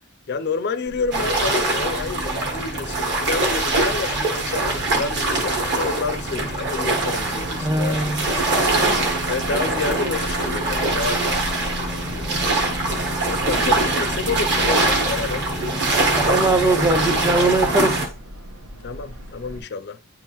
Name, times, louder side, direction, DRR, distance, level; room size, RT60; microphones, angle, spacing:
voice 1, 0.3-8.4 9.3-12.8 13.2-15.9 18.8-20.0, left 4 dB, 50° left, 0.4 m, -29 dB
Subway metro underground, 0.8-19.6, equal, 75° right, 1.1 m, -37 dB
sound 1, 1.1-18.1, right 2 dB, 55° right, 1.3 m, -23 dB
voice 2, 7.6-8.2 16.2-18.0, right 2 dB, 15° right, 0.4 m, -20 dB
9.5 x 3.6 x 3.0 m
head